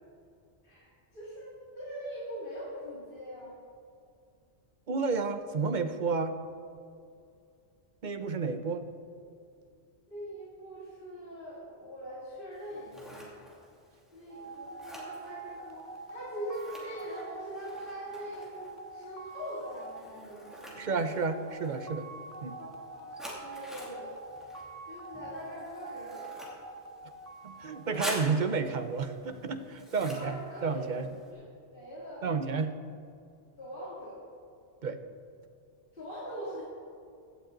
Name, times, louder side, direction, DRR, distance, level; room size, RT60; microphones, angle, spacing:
voice 1, 0.6-3.6 10.1-13.4 14.1-21.0 22.6-24.2 24.8-26.2 30.1-31.0 31.3-31.4 31.7-32.3 33.6-34.2 35.9-36.6, equal, 50° left, -9 dB, 3.1 m, -42 dB
voice 2, 4.9-6.3 8.0-8.9 20.8-22.0 22.4-22.6 27.4-31.1 32.2-32.7 34.8-35.0, right 4 dB, 45° right, 8 dB, 0.9 m, -31 dB
Scissors, 12.5-31.3, equal, ahead, 2.7 m, -47 dB
sound 1, 14.3-28.8, right 3 dB, 15° right, 0.8 m, -46 dB
16.5 x 11.5 x 4.0 m, 2.5 s
omnidirectional pair, 1.1 m